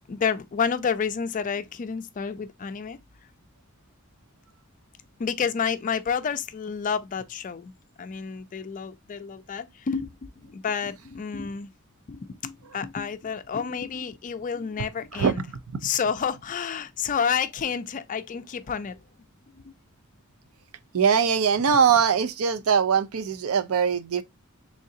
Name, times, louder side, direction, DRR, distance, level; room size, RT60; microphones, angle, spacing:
voice 1, 0.1-3.0 5.2-7.7 8.0-11.7 12.1-15.4 15.8-19.0 19.6-19.7, left 6 dB, 35° left, 0.3 m, -29 dB
voice 2, 20.9-24.2, right 6 dB, 80° right, 0.5 m, -21 dB
3.7 x 3.2 x 2.6 m
head